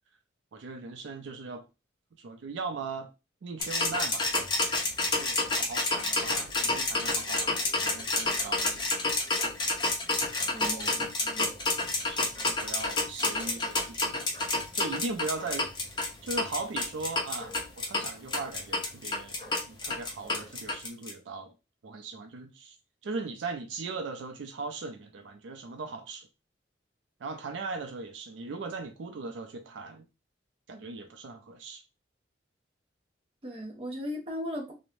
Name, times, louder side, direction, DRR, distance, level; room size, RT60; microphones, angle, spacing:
voice 1, 0.5-1.6 2.2-3.1 3.4-4.5 5.2-8.9 10.5-11.0 12.0-14.3 14.7-15.9 16.2-19.4 19.7-21.5 21.8-22.8 23.0-26.3 27.2-30.0 30.7-31.8, right 3 dB, 75° right, 0.4 m, -39 dB
sound 1, 3.6-21.1, left 2 dB, 25° left, 0.5 m, -29 dB
voice 2, 10.5-11.5 33.4-34.7, equal, 30° right, 0.6 m, -37 dB
2.5 x 2.0 x 3.0 m
head